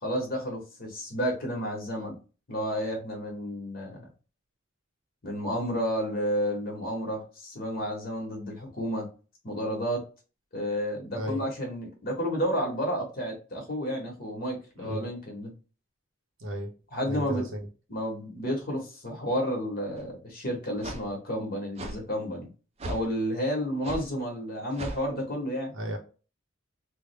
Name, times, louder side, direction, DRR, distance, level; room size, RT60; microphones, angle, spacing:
voice 1, 0.0-2.2 2.5-4.0 5.2-9.1 9.4-10.0 10.5-15.5 16.9-17.5 17.9-22.5 22.9-25.7, equal, 45° left, 1.2 m, -31 dB
voice 2, 11.1-11.5 14.8-15.1 16.4-16.7 17.1-17.6 25.7-26.0, equal, 75° right, 0.9 m, -34 dB
sound 1, 20.0-20.1 20.8-21.0 21.8-22.0 22.8-23.1 23.8-24.1 24.7-25.0, right 1 dB, 30° right, 0.5 m, -36 dB
3.4 x 2.1 x 3.3 m
head